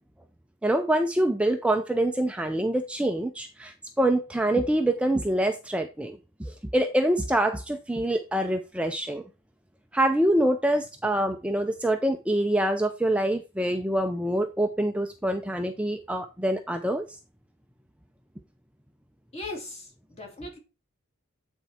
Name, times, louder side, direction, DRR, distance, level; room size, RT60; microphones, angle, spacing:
voice 1, 0.6-9.2 9.9-17.0, right 1 dB, 5° right, 0.5 m, -25 dB
voice 2, 19.3-20.6, left 2 dB, 30° left, 3.0 m, -38 dB
9.2 x 4.5 x 4.3 m
head